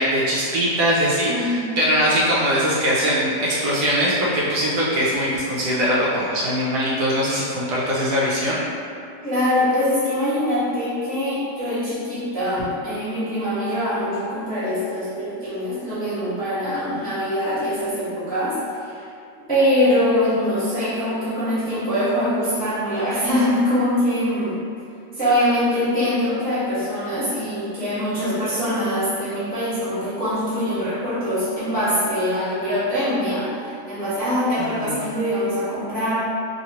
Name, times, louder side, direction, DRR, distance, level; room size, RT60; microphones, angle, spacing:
voice 1, 0.0-8.6 34.8-35.1, equal, 75° right, -6 dB, 1.0 m, -21 dB
voice 2, 1.3-1.8 9.2-19.1 19.5-24.6 25.1-36.1, equal, 5° left, -14 dB, 0.8 m, -23 dB
2.9 x 2.8 x 2.8 m, 2.4 s
omnidirectional pair, 1.8 m